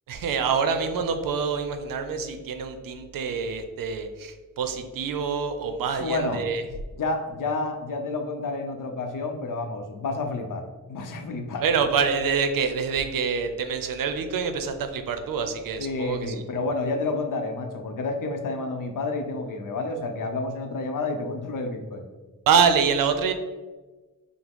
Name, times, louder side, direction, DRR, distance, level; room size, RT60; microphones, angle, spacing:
voice 1, 0.1-6.6 11.6-16.3 22.5-23.3, right 6 dB, 90° right, 8 dB, 0.5 m, -26 dB
voice 2, 5.9-6.4 6.9-11.7 15.8-22.1, left 3 dB, 75° left, 5 dB, 0.6 m, -30 dB
5.9 x 2.0 x 3.5 m, 1.3 s
wide cardioid pair, 165°, 33 cm